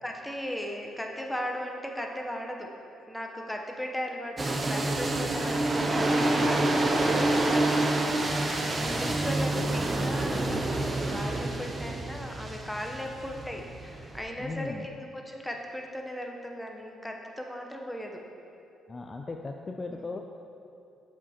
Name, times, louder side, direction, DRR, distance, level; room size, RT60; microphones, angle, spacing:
voice 1, 0.0-2.7 3.1-8.1 8.3-18.2 19.9-20.1, equal, 5° left, 1 dB, 0.7 m, -37 dB
sound 1, 4.4-14.2, right 2 dB, 30° right, 0.6 m, -27 dB
voice 2, 8.8-9.2 14.4-14.9 18.9-20.2, left 3 dB, 30° left, 3 dB, 0.3 m, -37 dB
7.5 x 5.4 x 2.8 m, 2.7 s
cardioid pair, 90°, 0 cm